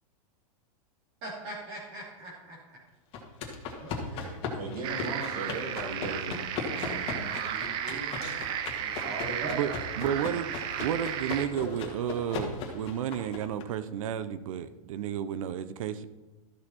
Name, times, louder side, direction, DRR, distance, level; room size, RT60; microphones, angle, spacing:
voice 1, 1.2-2.6 3.7-4.8 9.0-9.5, right 2 dB, 40° right, -5 dB, 3.0 m, -41 dB
sound 1, 3.1-13.6, left 5 dB, 30° left, 1.8 m, -38 dB
voice 2, 4.2-8.4 8.7-10.1, right 3 dB, 85° right, 2 dB, 2.7 m, -39 dB
sound 2, 4.8-11.5, right 9 dB, 25° right, 0.5 m, -34 dB
voice 3, 9.5-16.1, right 9 dB, 65° right, 14 dB, 0.7 m, -32 dB
13.5 x 6.5 x 4.3 m, 1.2 s
supercardioid pair, 160°, 18 cm